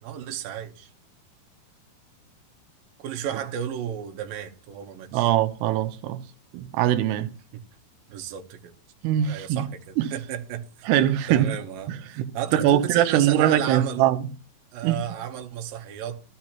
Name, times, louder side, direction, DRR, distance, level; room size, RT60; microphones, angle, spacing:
voice 1, 0.0-0.9 3.0-5.3 8.1-8.7 9.3-10.7 11.3-11.9 12.3-14.1 14.7-16.2, right 9 dB, 70° right, 2.7 m, -33 dB
voice 2, 5.1-6.2 6.5-7.3 9.0-9.7 10.0-10.1 10.9-11.5 11.9-14.3 14.8-15.0, right 12 dB, 90° right, 2.9 m, -22 dB
13.5 x 13.0 x 3.0 m
omnidirectional pair, 4.6 m